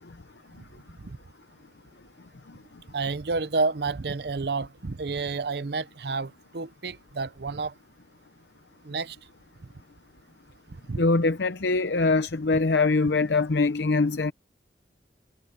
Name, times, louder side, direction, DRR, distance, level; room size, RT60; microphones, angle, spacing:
voice 1, 2.9-7.7 8.8-9.2 10.9-11.0, right 4 dB, 65° right, 0.7 m, -30 dB
voice 2, 11.0-14.3, left 3 dB, 70° left, 0.7 m, -23 dB
head